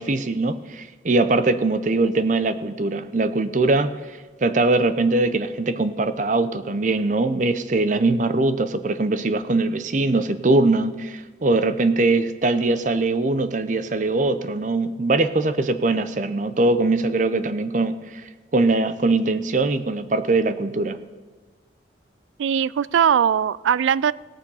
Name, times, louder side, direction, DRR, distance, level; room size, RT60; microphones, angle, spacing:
voice 1, 0.0-3.9 4.4-18.2 18.5-21.0, right 2 dB, 40° right, 11 dB, 0.6 m, -21 dB
voice 2, 22.4-24.1, right 8 dB, 90° right, 20 dB, 0.3 m, -20 dB
17.5 x 7.0 x 5.5 m, 1.4 s
head